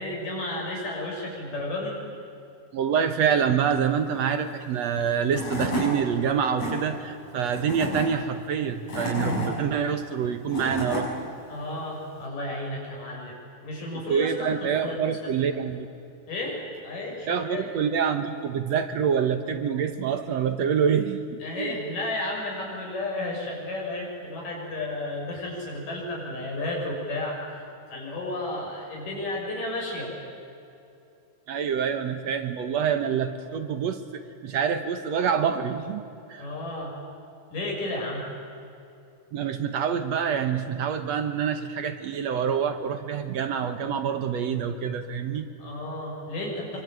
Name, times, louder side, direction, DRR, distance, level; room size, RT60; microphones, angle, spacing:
voice 1, 0.0-2.0 11.5-13.4 13.6-15.3 16.3-17.6 21.4-27.4 27.9-30.1 36.4-36.9 37.5-38.2 45.6-46.8, left 2 dB, 80° left, -2 dB, 8.4 m, -32 dB
voice 2, 2.7-11.1 14.1-15.9 17.3-21.7 31.5-36.0 36.3-36.5 39.3-45.5, right 7 dB, 65° right, 8 dB, 2.0 m, -26 dB
Tools / Wood, 5.0-5.1 5.3-5.9 6.4-6.7 7.5-8.0 8.7-9.5 10.2-11.0, left 1 dB, 55° left, 8.3 m, -30 dB
25.5 x 24.5 x 9.2 m, 2.7 s
omnidirectional pair, 3.7 m